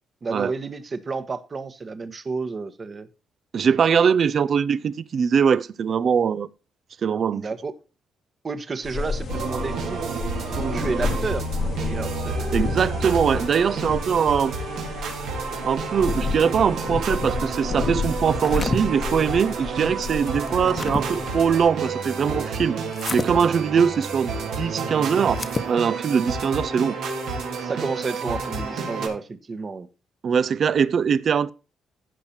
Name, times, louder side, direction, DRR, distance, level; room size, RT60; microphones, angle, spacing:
voice 1, 0.2-3.1 7.3-7.7 8.4-10.2 10.5-11.4 11.8-12.5 27.6-29.9, right 4 dB, 35° right, 1.3 m, -31 dB
voice 2, 3.5-6.5 7.0-7.5 10.6-10.8 12.5-14.5 15.6-22.8 23.1-26.9 30.2-31.5, right 7 dB, 55° right, 0.6 m, -22 dB
sound 1, 8.8-21.7, left 4 dB, 60° left, 1.3 m, -32 dB
sound 2, 9.3-29.1, right 4 dB, 80° right, 3.7 m, -30 dB
sound 3, 18.2-18.8 20.3-21.0 22.9-23.3 25.3-25.7, left 4 dB, 35° left, 1.1 m, -29 dB
15.5 x 5.7 x 4.3 m
cardioid pair, 90°, 0 cm